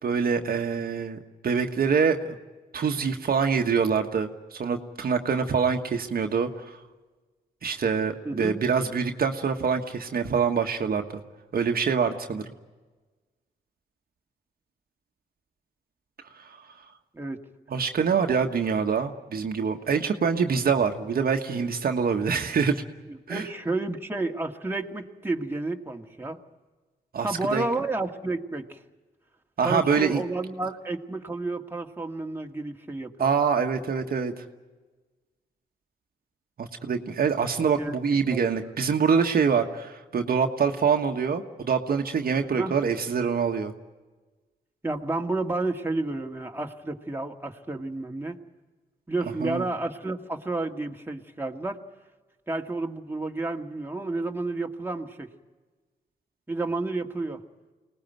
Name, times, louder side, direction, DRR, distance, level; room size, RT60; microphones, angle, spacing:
voice 1, 0.0-2.3 2.7-6.8 7.6-11.2 11.5-12.4 16.4-16.6 17.7-22.8 23.3-23.4 27.1-27.6 29.6-30.2 33.2-34.4 36.6-43.7 49.4-49.6, right 6 dB, 60° right, 4 dB, 1.5 m, -25 dB
voice 2, 8.3-8.6 17.1-17.4 23.3-26.4 27.2-28.8 29.6-33.3 37.8-37.9 38.3-38.4 42.5-42.7 44.8-48.4 49.1-51.8 52.5-55.3 56.5-57.4, right 2 dB, 15° right, 2 dB, 2.1 m, -31 dB
24.0 x 19.0 x 9.3 m, 1.3 s
cardioid pair, 60°, 17 cm